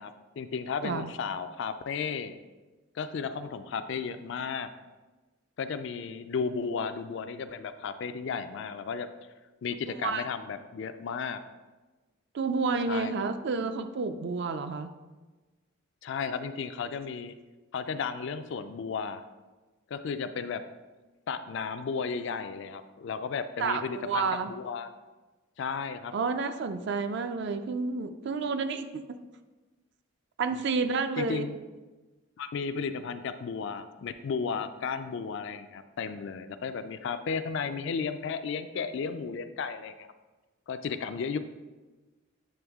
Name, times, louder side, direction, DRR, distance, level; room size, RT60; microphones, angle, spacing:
voice 1, 0.0-2.3 2.9-4.7 5.6-9.1 9.6-11.4 12.9-13.1 16.0-17.3 17.7-19.2 19.9-20.6 21.3-24.9 25.6-26.1 30.5-30.6 31.2-31.6 32.4-40.1 40.7-41.4, left 5 dB, 55° left, 10 dB, 0.3 m, -34 dB
voice 2, 9.9-10.2 12.3-14.9 23.6-24.5 26.1-29.2 30.4-31.4, right 4 dB, 55° right, 8 dB, 0.4 m, -30 dB
8.6 x 3.4 x 3.5 m, 1.2 s
head